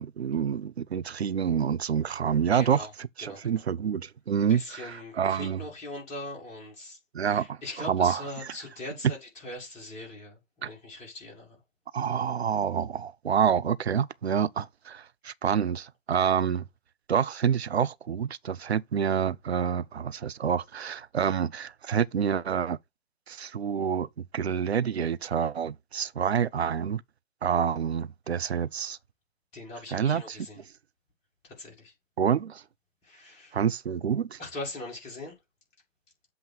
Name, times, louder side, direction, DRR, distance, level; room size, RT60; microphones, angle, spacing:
voice 1, 0.0-2.9 3.2-5.6 7.1-8.5 10.6-10.7 11.9-16.7 17.1-22.8 23.3-24.1 24.3-27.0 27.4-29.0 29.9-30.4 32.2-32.6 33.5-34.4, right 7 dB, 55° right, 0.5 m, -27 dB
voice 2, 2.5-2.9 3.2-3.6 4.5-11.6 29.5-30.6 31.4-31.9 33.0-33.6 34.4-35.4, left 2 dB, 15° left, 2.2 m, -41 dB
7.8 x 2.6 x 5.5 m
figure-of-eight pair, 135°, 38 cm